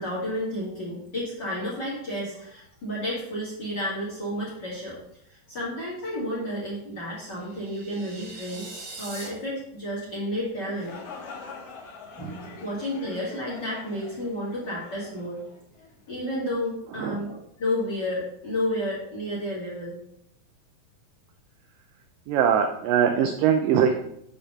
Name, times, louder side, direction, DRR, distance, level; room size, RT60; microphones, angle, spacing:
voice 1, 0.0-5.0 5.2-8.7 9.0-11.0 12.2-15.5 16.1-20.0, left 1 dB, 35° left, -5 dB, 1.9 m, -31 dB
sound 1, 7.3-9.3, right 2 dB, 40° right, 3.0 m, -42 dB
sound 2, 10.5-16.2, left 4 dB, 55° left, 2.2 m, -44 dB
voice 2, 22.3-23.9, right 8 dB, 80° right, 5 dB, 2.1 m, -22 dB
7.1 x 4.3 x 6.4 m, 0.76 s
omnidirectional pair, 4.2 m